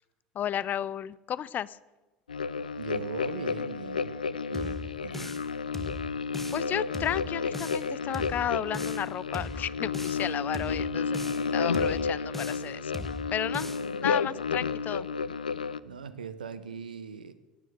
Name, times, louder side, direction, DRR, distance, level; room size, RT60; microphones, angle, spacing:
voice 1, 0.3-1.8 6.5-11.2 11.5-12.9 13.3-13.7 14.0-15.1, left 10 dB, 40° left, 20 dB, 0.6 m, -33 dB
sound 1, 2.3-15.8, left 5 dB, 90° left, 0.5 m, -31 dB
voice 2, 2.8-4.2 4.5-5.3 15.8-17.3, right 6 dB, 85° right, 13 dB, 1.1 m, -39 dB
sound 2, 4.5-5.5 5.7-6.7 6.9-7.9 8.1-9.1 9.3-10.3 10.5-11.5 11.7-12.7 12.9-13.9, equal, 5° left, 1.5 m, -39 dB
18.0 x 9.4 x 8.0 m, 1.1 s
hypercardioid pair, 75°, 4 cm